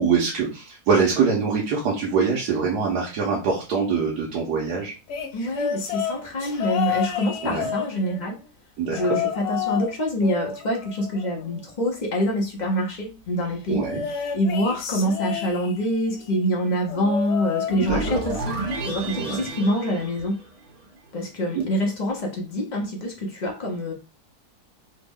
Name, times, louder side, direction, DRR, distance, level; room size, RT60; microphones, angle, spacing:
voice 1, 0.0-4.9 7.4-7.7 8.8-9.0 13.7-14.0 17.9-18.0 19.2-19.5 21.6-21.7, right 5 dB, 90° right, -3 dB, 1.3 m, -23 dB
sound 1, 5.1-8.4 8.9-9.9 10.2-11.8 13.8-16.0 16.9-18.4 18.7-19.1 20.2-20.3, left 8 dB, 85° left, 1.2 m, -30 dB
voice 2, 5.3-8.4 8.9-13.8 14.3-18.5 18.9-20.4 21.1-23.9, equal, 50° left, 0 dB, 0.5 m, -25 dB
sound 2, 17.7-20.9, right 2 dB, 65° right, 1.5 m, -31 dB
3.3 x 2.1 x 3.4 m, 0.33 s
omnidirectional pair, 1.7 m